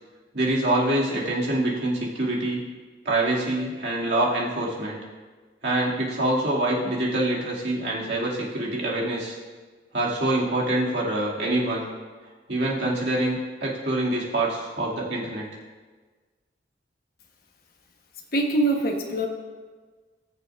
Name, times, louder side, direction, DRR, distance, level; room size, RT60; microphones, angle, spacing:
voice 1, 0.3-2.6 3.0-5.0 5.6-9.4 9.9-11.9 12.5-15.5, right 1 dB, 65° right, -5 dB, 2.2 m, -25 dB
voice 2, 18.3-19.3, right 1 dB, 50° left, 2 dB, 1.1 m, -23 dB
20.0 x 6.9 x 2.5 m, 1.4 s
head